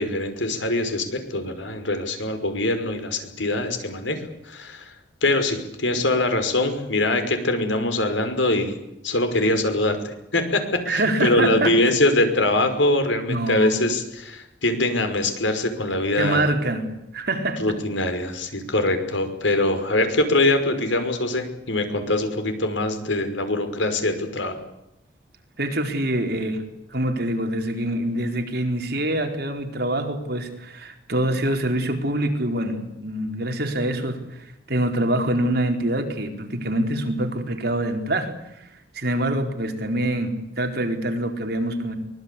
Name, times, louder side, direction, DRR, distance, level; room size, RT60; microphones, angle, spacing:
voice 1, 0.0-4.9 5.2-8.8 9.0-16.5 17.6-24.6, left 2 dB, 85° left, 8 dB, 5.5 m, -23 dB
voice 2, 10.9-11.8 13.3-13.7 16.2-16.9 17.1-17.7 25.6-26.6 26.9-38.7 38.9-42.0, right 1 dB, 55° right, 4 dB, 4.5 m, -25 dB
24.0 x 20.5 x 8.5 m, 0.88 s
head